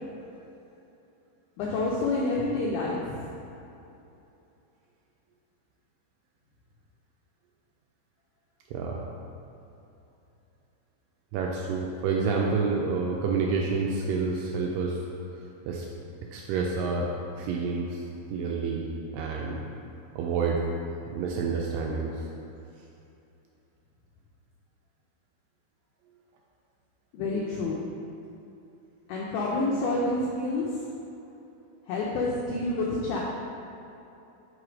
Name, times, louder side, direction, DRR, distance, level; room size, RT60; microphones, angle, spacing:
voice 1, 1.6-3.3 27.1-27.8 29.1-30.7 31.9-33.2, left 2 dB, 80° left, -4 dB, 1.8 m, -28 dB
voice 2, 8.7-9.0 11.3-15.0 15.3-15.9 16.3-17.1 17.4-18.0 18.3-19.6 20.1-20.6 21.1-22.3, right 4 dB, 80° right, -1 dB, 2.0 m, -29 dB
4.9 x 4.7 x 4.9 m, 2.9 s
omnidirectional pair, 4.2 m